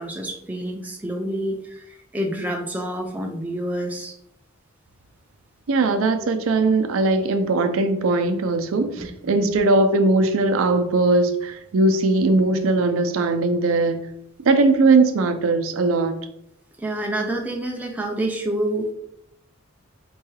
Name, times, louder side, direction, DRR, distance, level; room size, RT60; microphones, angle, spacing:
voice 1, 0.0-4.1 9.0-9.6 16.8-18.9, right 1 dB, 5° right, 0 dB, 0.4 m, -28 dB
voice 2, 5.7-14.0 14.4-16.2, right 3 dB, 70° right, 7 dB, 0.4 m, -19 dB
4.4 x 2.3 x 3.1 m, 0.74 s
head